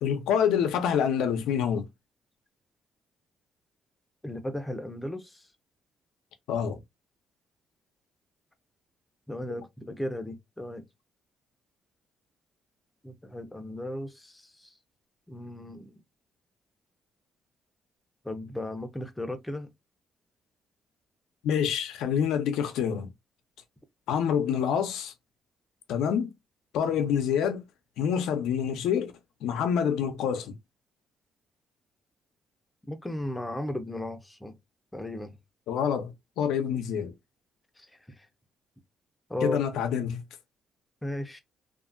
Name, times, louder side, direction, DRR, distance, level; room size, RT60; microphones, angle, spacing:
voice 1, 0.0-1.9 6.5-6.8 21.4-23.1 24.1-25.1 25.9-26.3 26.7-27.6 28.0-29.1 29.4-30.6 35.7-37.1 39.4-40.2, left 8 dB, 90° left, 0.5 m, -27 dB
voice 2, 4.2-5.4 9.3-10.8 13.0-14.7 15.3-16.0 18.2-19.7 32.9-34.6 34.9-35.4 39.3-39.6 41.0-41.4, left 1 dB, 10° left, 0.6 m, -35 dB
2.7 x 2.4 x 2.4 m
cardioid pair, 90°, 0 cm